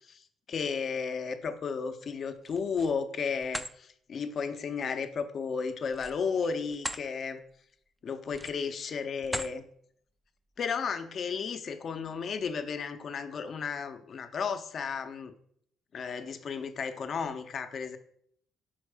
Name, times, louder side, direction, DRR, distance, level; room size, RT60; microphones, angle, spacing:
voice 1, 0.1-7.4 8.0-9.6 10.6-15.3 15.9-18.0, left 5 dB, 50° left, 9 dB, 0.7 m, -33 dB
sound 1, 2.4-3.0 3.4-3.7 5.9-7.1 7.5-7.7 8.3-8.7 9.2-9.6, equal, 5° right, 0.4 m, -38 dB
5.8 x 4.3 x 4.8 m, 0.65 s
cardioid pair, 95°, 0 cm